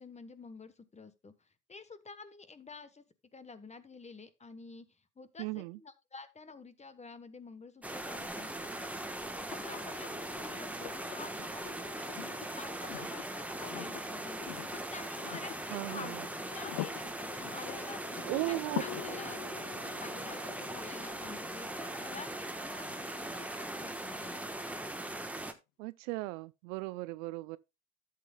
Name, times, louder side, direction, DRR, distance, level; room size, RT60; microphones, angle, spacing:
voice 1, 0.0-3.0 3.3-4.9 5.2-16.1 16.5-17.0 17.4-19.7 20.0-24.5, left 4 dB, 15° left, 1.1 m, -50 dB
voice 2, 5.4-5.8 15.7-16.2 18.2-18.8 19.1-19.2 25.8-27.6, right 22 dB, 60° right, 0.6 m, -37 dB
sound 1, 7.8-25.5, right 1 dB, 5° right, 1.2 m, -40 dB
sound 2, 9.5-23.5 25.2-25.3, left 17 dB, 55° left, 0.8 m, -46 dB
13.0 x 8.4 x 2.3 m
hypercardioid pair, 90°, 44 cm